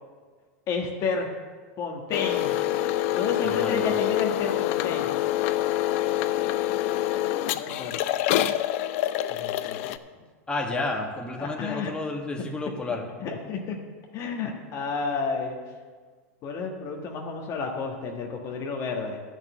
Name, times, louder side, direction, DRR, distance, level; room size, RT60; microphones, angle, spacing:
voice 1, 0.7-1.3 1.8-2.6 3.1-5.2 7.6-8.0 9.3-9.8 11.4-11.9 13.2-13.8 14.1-15.6 16.4-19.2, left 4 dB, 40° left, 1 dB, 1.4 m, -31 dB
sound 1, 2.1-10.0, left 13 dB, 60° left, 0.5 m, -26 dB
voice 2, 3.4-3.8 10.5-13.0, left 2 dB, 10° left, -1 dB, 1.8 m, -31 dB
10.5 x 6.4 x 8.1 m, 1.5 s
hypercardioid pair, 105°, 8 cm